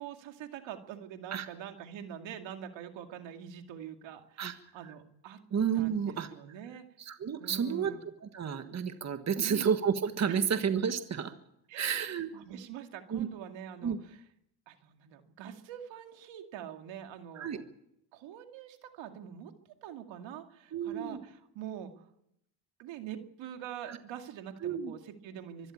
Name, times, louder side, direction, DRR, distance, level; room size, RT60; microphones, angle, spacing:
voice 1, 0.0-5.4 5.7-6.8 7.4-8.0 9.4-9.7 10.3-10.4 11.7-14.2 14.7-17.6 18.1-19.5 19.8-22.1 22.8-25.7, right 9 dB, 85° right, 5 dB, 2.4 m, -45 dB
voice 2, 5.5-6.3 7.0-7.9 8.2-11.3 11.7-12.3 13.1-13.3 13.8-14.0 17.3-17.6 20.7-21.2 23.9-24.0 24.6-24.9, right 7 dB, 35° right, 9 dB, 1.5 m, -31 dB
24.0 x 13.0 x 8.6 m, 0.78 s
cardioid pair, 115°, 44 cm